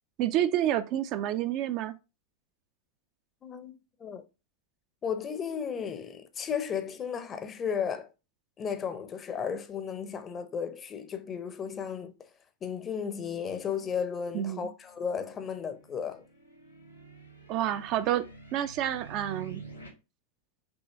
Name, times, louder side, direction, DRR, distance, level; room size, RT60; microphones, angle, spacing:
voice 1, 0.2-1.9 14.3-14.7 17.5-18.2 18.5-19.6, right 12 dB, 40° right, 0.4 m, -29 dB
voice 2, 3.4-4.2 5.0-8.1 8.6-12.1 12.6-16.2, left 7 dB, 25° left, 0.6 m, -34 dB
sound 1, 14.9-19.9, right 4 dB, 80° left, 1.4 m, -48 dB
5.5 x 3.0 x 2.9 m
figure-of-eight pair, 90°, 0 cm